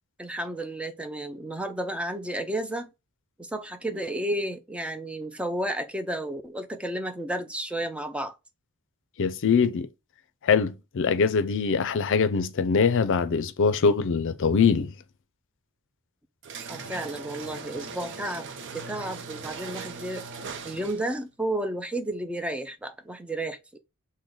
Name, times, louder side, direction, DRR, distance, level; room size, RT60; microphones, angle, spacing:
voice 1, 0.2-2.9 3.4-8.3 16.7-18.5 18.7-20.3 20.6-23.8, right 1 dB, 5° right, 0.4 m, -32 dB
voice 2, 9.2-9.9 10.4-14.9, left 5 dB, 60° left, 0.5 m, -23 dB
sound 1, 16.4-21.2, right 4 dB, 55° right, 0.6 m, -39 dB
6.2 x 2.2 x 3.8 m
head